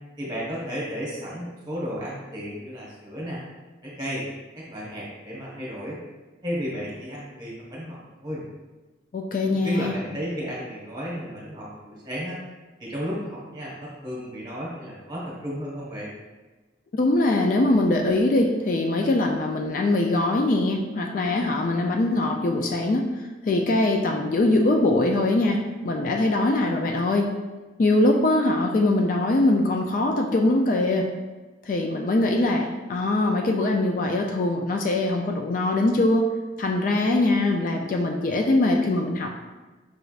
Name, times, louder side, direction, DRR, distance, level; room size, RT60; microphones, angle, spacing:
voice 1, 0.2-3.4 3.8-4.2 4.5-6.0 6.4-8.4 9.5-12.4 12.8-16.1, equal, 20° right, -5 dB, 1.2 m, -33 dB
voice 2, 9.1-10.0 16.9-23.1 23.5-27.3 27.8-31.1 31.6-36.3 36.6-39.3, left 2 dB, 45° left, 2 dB, 0.3 m, -22 dB
5.0 x 3.3 x 2.4 m, 1.2 s
head